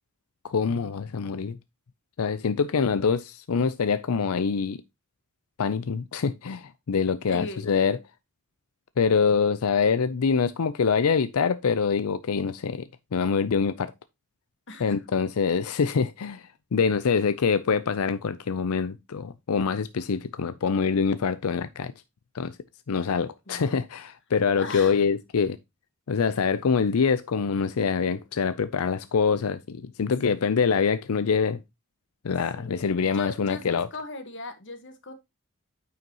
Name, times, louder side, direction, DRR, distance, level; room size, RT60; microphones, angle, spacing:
voice 1, 0.4-1.6 2.2-4.8 5.6-8.0 9.0-13.9 14.8-21.9 22.3-22.6 22.9-25.6 26.1-31.6 32.2-33.9, left 5 dB, 80° left, 0.5 m, -25 dB
voice 2, 7.3-7.7 14.7-15.0 23.1-23.8 24.5-25.0 30.3-30.5 32.5-35.1, left 3 dB, 55° left, 1.3 m, -39 dB
9.2 x 5.7 x 2.9 m
head